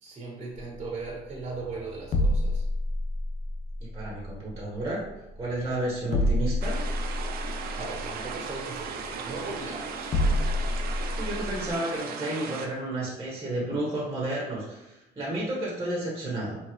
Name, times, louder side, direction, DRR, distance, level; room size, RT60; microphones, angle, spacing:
voice 1, 0.0-2.6 7.8-10.1, right 3 dB, 40° right, -3 dB, 1.1 m, -38 dB
sound 1, 0.8-11.7, left 1 dB, 45° left, 0.6 m, -29 dB
voice 2, 3.8-5.0 5.4-6.7 11.2-16.6, right 1 dB, 15° right, -4 dB, 1.3 m, -31 dB
sound 2, 6.6-12.7, right 5 dB, 65° right, 0.6 m, -37 dB
4.1 x 3.7 x 3.1 m, 1.0 s
cardioid pair, 110°, 17 cm